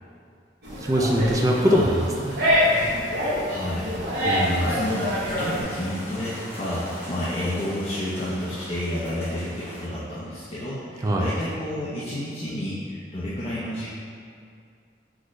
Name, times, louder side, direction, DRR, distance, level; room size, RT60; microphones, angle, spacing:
sound 1, 0.6-5.6, left 1 dB, 65° right, 1.0 m, -25 dB
voice 1, 0.9-2.3 4.2-4.7 11.0-11.3, equal, 20° right, -1 dB, 0.3 m, -22 dB
voice 2, 1.6-2.0 3.5-3.9 4.5-13.9, left 1 dB, 35° left, -8 dB, 0.6 m, -30 dB
sound 2, 4.2-9.9, equal, 15° left, 1.1 m, -40 dB
6.0 x 2.6 x 3.1 m, 2.3 s
head